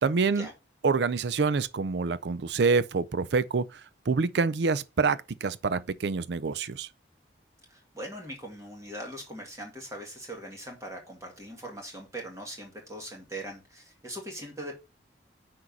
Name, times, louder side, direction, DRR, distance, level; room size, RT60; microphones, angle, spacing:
voice 1, 0.0-0.5 0.8-3.8 4.1-6.9, right 4 dB, 65° right, 0.4 m, -26 dB
voice 2, 7.7-14.8, right 1 dB, 15° right, 2.0 m, -41 dB
6.2 x 4.5 x 5.4 m
head